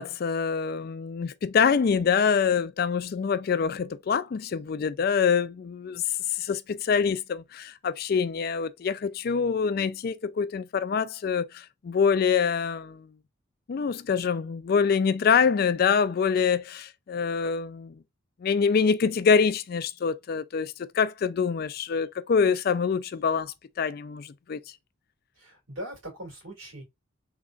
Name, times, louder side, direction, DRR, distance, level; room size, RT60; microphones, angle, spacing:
voice 1, 0.0-6.0 6.3-13.1 13.7-18.0 18.4-24.6, left 6 dB, 50° left, 0.3 m, -25 dB
voice 2, 25.4-26.8, equal, 80° right, 2.5 m, -40 dB
3.7 x 2.9 x 2.4 m
head